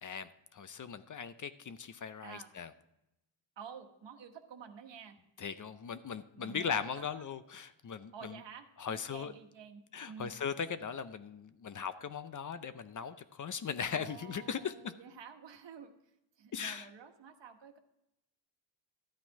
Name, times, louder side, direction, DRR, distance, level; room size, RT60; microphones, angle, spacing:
voice 1, 0.0-2.7 5.4-8.4 8.8-9.3 9.9-14.9 16.5-16.9, left 7 dB, 40° left, 12 dB, 0.6 m, -39 dB
voice 2, 3.6-5.2 6.3-7.3 8.1-10.3 13.9-15.9 16.4-17.8, right 7 dB, 65° right, 6 dB, 1.3 m, -50 dB
12.5 x 8.8 x 4.6 m, 0.87 s
cardioid pair, 115°, 46 cm